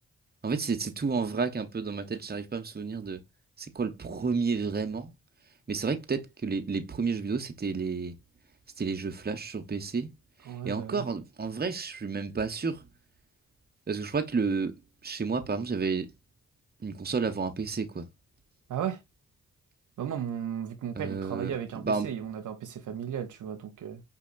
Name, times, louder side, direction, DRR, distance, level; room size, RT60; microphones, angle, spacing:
voice 1, 0.4-3.2 3.6-5.1 5.7-8.2 8.8-10.1 10.4-12.8 13.9-14.8 15.0-16.1 16.8-18.1 21.0-22.1, right 5 dB, 30° right, 0.9 m, -31 dB
voice 2, 10.5-11.1 18.7-19.0 20.0-24.0, right 9 dB, 75° right, 0.6 m, -35 dB
5.2 x 2.8 x 2.4 m
supercardioid pair, 45°, 31 cm